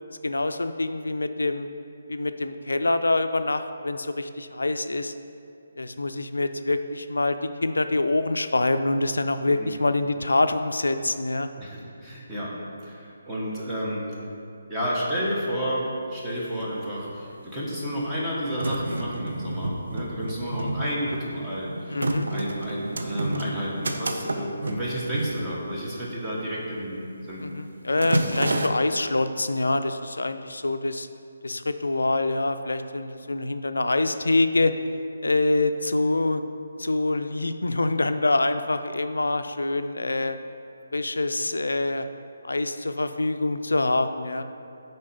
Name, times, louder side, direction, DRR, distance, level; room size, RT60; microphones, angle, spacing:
voice 1, 0.2-1.7 2.1-5.1 5.8-11.5 21.9-22.3 27.4-31.1 31.4-34.8 35.2-36.4 36.8-40.4 40.9-42.1 42.4-44.4, left 2 dB, 75° left, 9 dB, 0.3 m, -25 dB
voice 2, 11.6-12.5 12.8-14.1 14.7-22.0 22.3-27.4, equal, 10° right, -8 dB, 1.3 m, -31 dB
sound 1, 16.2-16.3 16.4-17.3 17.9-26.2 26.5-26.8 27.1-27.4 27.7-28.7, right 2 dB, 65° right, 0.6 m, -30 dB
6.4 x 4.3 x 5.2 m, 2.5 s
figure-of-eight pair, 145°, 0 cm